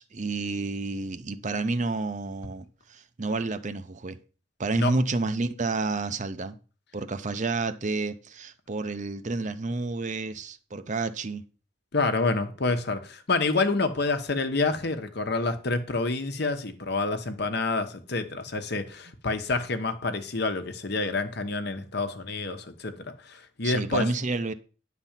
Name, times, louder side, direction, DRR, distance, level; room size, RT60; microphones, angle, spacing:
voice 1, 0.0-4.2 4.6-6.6 6.9-11.4 23.6-24.5, right 3 dB, 40° right, 0.6 m, -30 dB
voice 2, 11.9-23.0 23.3-24.1, left 3 dB, 55° left, 1.1 m, -28 dB
10.0 x 4.1 x 7.3 m
head